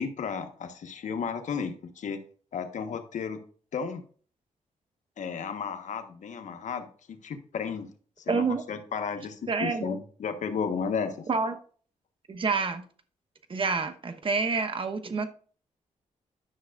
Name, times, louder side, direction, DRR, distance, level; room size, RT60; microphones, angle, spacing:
voice 1, 0.0-2.2 2.5-3.4 3.7-4.0 5.2-7.9 8.3-11.3, left 6 dB, 70° left, 7 dB, 1.2 m, -33 dB
voice 2, 8.3-8.6 9.5-9.9 11.3-11.6 12.3-12.8 13.5-15.3, right 4 dB, 40° right, 7 dB, 1.0 m, -28 dB
11.0 x 6.1 x 2.4 m, 0.42 s
cardioid pair, 80°, 13 cm